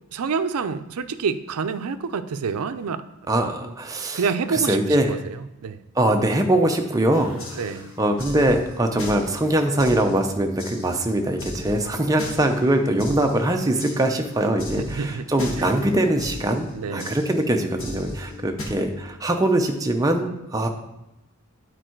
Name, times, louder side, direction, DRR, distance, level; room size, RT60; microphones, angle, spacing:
voice 1, 0.1-3.0 4.1-5.8 7.6-7.9 14.8-15.3 15.6-15.7 16.7-17.2, right 5 dB, 85° right, 11 dB, 0.5 m, -28 dB
voice 2, 3.3-4.2 4.5-5.1 6.0-7.6 8.0-20.7, right 1 dB, 15° right, 4 dB, 0.6 m, -22 dB
sound 1, 7.1-18.6, left 1 dB, 65° left, 1.5 m, -37 dB
8.9 x 4.6 x 4.5 m, 0.92 s
head